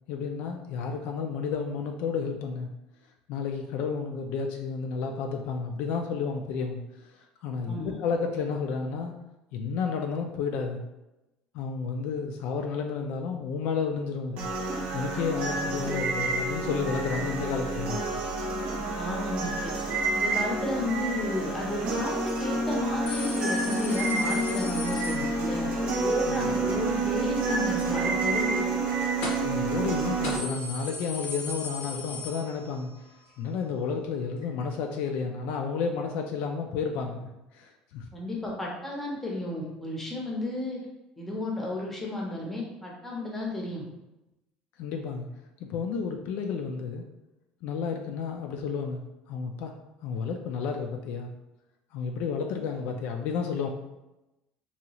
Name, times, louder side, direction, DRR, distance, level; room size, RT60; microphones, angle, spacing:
voice 1, 0.1-2.7 3.3-6.8 7.4-9.2 9.5-10.8 11.5-14.5 14.9-18.1 26.3-26.5 29.4-32.9 33.4-37.3 37.5-38.1 44.8-45.3 45.6-47.1 47.6-49.0 49.3-49.7 50.0-51.3 51.9-53.7, left 5 dB, 70° left, 4 dB, 0.3 m, -31 dB
voice 2, 7.7-8.0 15.5-15.6 18.8-19.8 20.1-25.7 26.0-28.6 38.1-40.8 41.2-43.8, left 1 dB, 10° left, -2 dB, 0.6 m, -33 dB
sound 1, 14.4-30.4, right 3 dB, 50° right, 0.6 m, -29 dB
sound 2, 23.1-25.8 29.2-29.6 29.9-30.0 30.2-33.0 33.3-33.4 34.4-34.5, left 3 dB, 85° left, 0.8 m, -38 dB
2.7 x 2.3 x 2.9 m, 0.97 s
cardioid pair, 155°, 3 cm